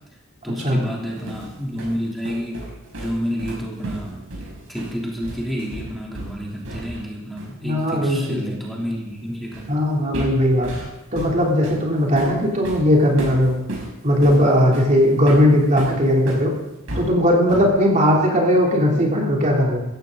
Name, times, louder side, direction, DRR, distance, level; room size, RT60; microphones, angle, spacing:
voice 1, 0.4-2.7 3.0-4.2 4.7-9.7, equal, ahead, -3 dB, 3.3 m, -29 dB
sound 1, 0.9-7.1 7.4-7.6 9.5-9.8 10.1-16.5 16.9-17.8, right 1 dB, 75° right, 5.5 m, -34 dB
voice 2, 7.6-8.5 9.7-10.7 11.1-13.6 14.0-16.5 16.9-19.8, equal, 35° right, -2 dB, 3.3 m, -18 dB
16.5 x 14.5 x 4.0 m, 1.0 s
head